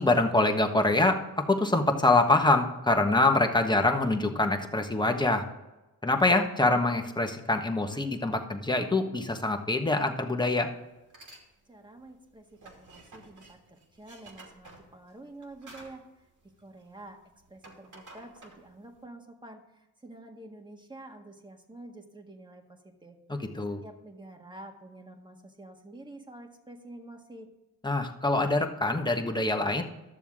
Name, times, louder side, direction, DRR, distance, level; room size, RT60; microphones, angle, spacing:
voice 1, 0.0-5.4 6.0-10.7 23.3-23.8 27.8-29.8, left 2 dB, 10° left, 4 dB, 1.3 m, -25 dB
sound 1, 10.4-10.6 11.0-11.5 11.8-17.1 17.4-19.0, right 2 dB, 55° right, 2.6 m, -52 dB
voice 2, 11.7-16.0 16.6-17.2 17.5-23.5 23.8-27.5, right 2 dB, 10° right, 3 dB, 1.6 m, -48 dB
12.5 x 7.0 x 3.7 m, 1.0 s
cardioid pair, 75°, 37 cm